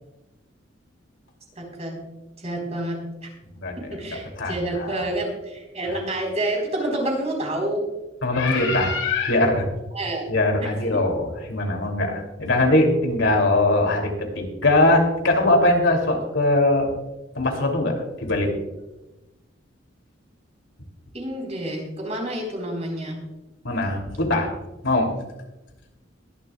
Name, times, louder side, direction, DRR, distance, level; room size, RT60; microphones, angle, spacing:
voice 1, 1.6-2.0 2.4-3.0 3.9-7.8 9.9-10.3 10.6-10.7 21.1-23.2, right 1 dB, 35° right, 1 dB, 4.1 m, -28 dB
voice 2, 4.1-5.0 5.9-6.1 8.2-9.7 10.3-16.9 17.3-18.5 23.6-24.5 24.8-25.1, left 2 dB, 75° left, 2 dB, 2.9 m, -21 dB
22.0 x 11.5 x 2.4 m, 1.0 s
head